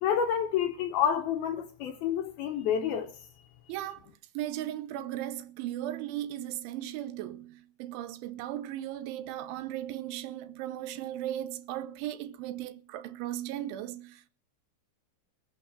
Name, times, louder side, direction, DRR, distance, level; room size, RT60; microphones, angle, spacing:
voice 1, 0.0-3.1, left 8 dB, 70° left, 2.4 m, -29 dB
voice 2, 3.7-14.3, right 13 dB, 85° right, 3.4 m, -37 dB
21.5 x 8.2 x 6.6 m
omnidirectional pair, 5.4 m